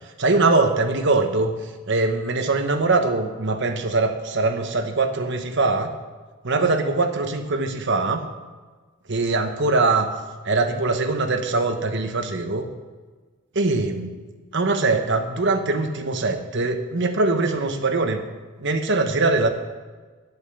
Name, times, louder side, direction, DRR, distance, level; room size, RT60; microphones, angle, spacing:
voice 1, 0.2-1.5 1.9-5.9 6.4-8.2 9.1-10.1 10.4-12.7 13.5-14.1 14.5-18.2 18.6-19.5, right 3 dB, 55° right, 6 dB, 1.1 m, -22 dB
11.0 x 8.1 x 6.9 m, 1.4 s
head